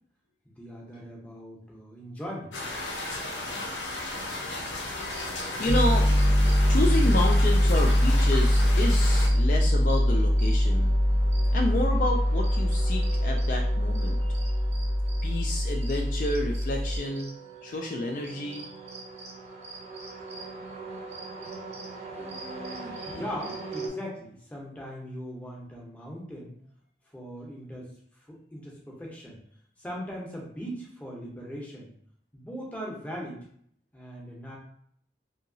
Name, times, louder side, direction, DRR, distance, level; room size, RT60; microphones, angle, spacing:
voice 1, 0.4-2.5 22.1-26.5 27.1-29.4 29.8-31.9 32.3-33.4 33.9-34.6, equal, 10° left, -3 dB, 0.7 m, -40 dB
sound 1, 2.5-9.3, left 2 dB, 85° left, 0.6 m, -35 dB
sound 2, 5.0-23.9, right 4 dB, 35° right, 0.6 m, -42 dB
voice 2, 5.6-6.1 6.5-10.9 11.5-14.3 15.2-17.3 17.6-18.6 23.1-23.2, left 2 dB, 45° left, 1 dB, 0.3 m, -30 dB
Piano, 5.7-17.0, equal, 70° right, 0.8 m, -23 dB
2.8 x 2.7 x 2.6 m, 0.65 s
head